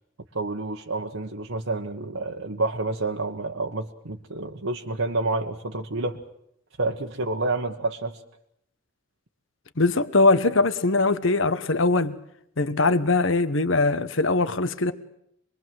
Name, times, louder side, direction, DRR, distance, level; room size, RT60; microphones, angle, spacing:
voice 1, 0.3-6.2 6.8-8.2, right 2 dB, 75° right, 1.5 m, -29 dB
voice 2, 9.8-12.2 12.6-14.9, left 3 dB, 70° left, 1.4 m, -21 dB
26.5 x 22.0 x 7.7 m
head